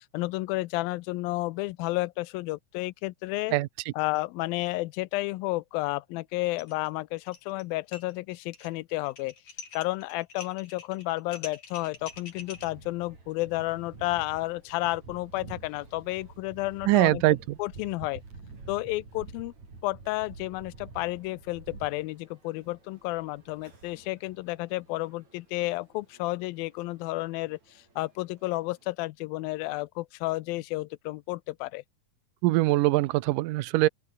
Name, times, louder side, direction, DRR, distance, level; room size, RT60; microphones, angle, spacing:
voice 1, 0.0-3.6 3.9-9.3 9.7-17.2 17.6-18.2 18.7-19.5 19.8-31.8, left 20 dB, 85° left, 2.5 m, -32 dB
sound 1, 6.6-6.9 7.2-7.6 7.9-12.7, left 5 dB, 50° left, 5.7 m, -45 dB
sound 2, 11.8-28.9, right 4 dB, 50° right, 7.2 m, -50 dB
voice 2, 16.9-17.4 32.4-33.9, right 18 dB, 80° right, 2.2 m, -22 dB
open air
omnidirectional pair, 4.1 m